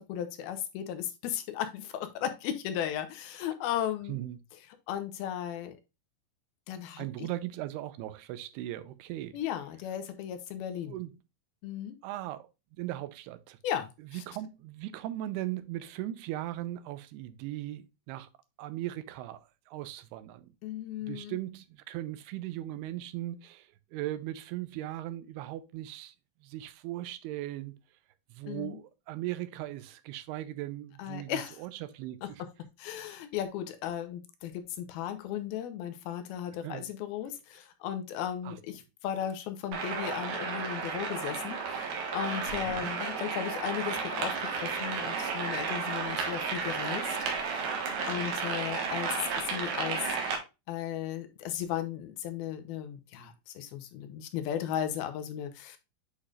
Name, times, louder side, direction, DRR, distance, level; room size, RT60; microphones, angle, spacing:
voice 1, 0.0-4.2 4.9-5.8 6.7-7.3 9.3-11.0 11.6-12.0 13.6-14.2 20.6-21.3 28.5-28.8 31.0-31.5 32.2-32.3 32.8-47.2 48.1-49.1 49.5-50.0 50.7-55.8, left 10 dB, 75° left, 2.6 m, -36 dB
voice 2, 4.1-4.4 7.0-9.4 10.9-11.1 12.0-12.5 12.8-13.6 14.1-18.3 18.6-20.5 21.0-26.2 26.4-27.7 28.3-32.4 33.1-33.2 36.6-36.9 38.4-38.6 42.5-43.0, right 14 dB, 90° right, 2.7 m, -38 dB
sound 1, 39.7-50.4, right 5 dB, 70° right, 3.0 m, -33 dB
8.6 x 4.9 x 2.4 m
omnidirectional pair, 4.5 m